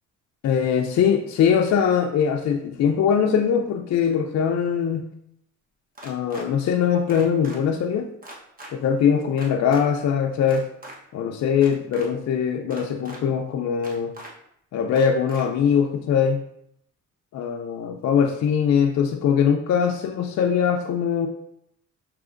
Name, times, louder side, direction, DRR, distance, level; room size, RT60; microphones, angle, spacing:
voice 1, 0.4-5.1 6.0-8.1 8.7-10.7 11.1-14.1 14.7-16.4 17.3-21.3, left 7 dB, 60° left, 2 dB, 0.5 m, -22 dB
sound 1, 6.0-6.5 7.1-7.6 8.2-8.7 9.4-9.8 10.4-11.0 11.5-12.1 12.7-13.2 13.8-14.3 15.0-15.4, right 1 dB, 30° right, 1.0 m, -41 dB
6.0 x 3.0 x 2.5 m, 0.73 s
cardioid pair, 90°, 30 cm